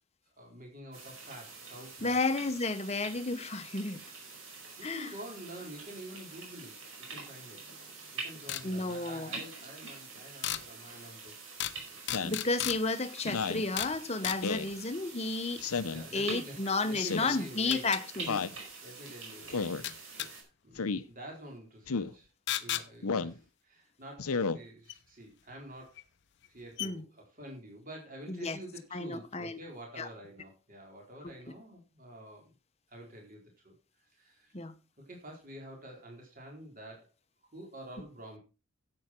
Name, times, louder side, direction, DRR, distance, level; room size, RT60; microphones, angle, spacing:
voice 1, 0.4-2.2 4.8-6.7 7.1-7.6 8.2-11.3 15.9-17.8 18.8-19.7 20.0-22.3 22.6-26.0 26.5-32.5 32.9-33.7 34.2-34.5 35.1-37.1 37.5-38.4, right 1 dB, 40° right, 4.2 m, -48 dB
sound 1, 0.9-20.4, right 4 dB, 65° right, 4.9 m, -46 dB
voice 2, 2.0-4.0 4.8-5.1 8.6-9.3 12.2-15.6 16.1-18.5 26.8-27.0 28.3-28.6 28.9-29.6 30.0-30.1 31.2-31.3 34.5-34.7, left 3 dB, 30° left, 0.9 m, -32 dB
sound 2, 8.5-8.7 10.4-10.6 11.6-11.8 12.1-12.8 13.8-14.0 14.2-14.4 16.7-16.8 17.7-18.0 19.8-20.3 22.5-22.9 24.9-25.0 26.0-26.1 26.4-26.5 26.8-26.9, left 12 dB, 50° left, 0.7 m, -34 dB
Speech synthesizer, 12.1-12.4 13.2-13.7 14.4-14.7 15.6-16.1 17.0-17.4 18.3-18.6 19.5-19.8 20.8-21.0 21.9-22.1 23.0-23.4 24.2-24.6, left 5 dB, 85° left, 0.8 m, -32 dB
11.0 x 8.7 x 4.5 m
head